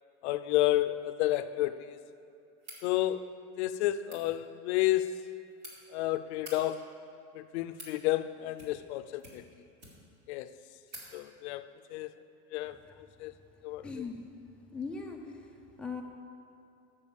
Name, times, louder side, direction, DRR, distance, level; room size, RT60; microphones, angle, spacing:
voice 1, 0.2-2.0 2.8-3.3 3.6-5.2 5.9-6.9 7.3-9.4 10.3-10.5 11.1-12.2 12.5-13.3 13.6-13.9, left 14 dB, 70° left, 12 dB, 0.5 m, -31 dB
sound 1, 2.6-2.8 3.9-4.2 5.2-5.7 6.3-6.6 7.4-8.0 8.5-8.9 9.2-10.2 10.5-10.6 10.9-11.1, right 1 dB, 45° right, 2.5 m, -49 dB
voice 2, 13.8-14.2 14.7-16.0, left 4 dB, 5° left, -1 dB, 0.5 m, -40 dB
6.9 x 6.8 x 7.1 m, 2.6 s
supercardioid pair, 160°, 35 cm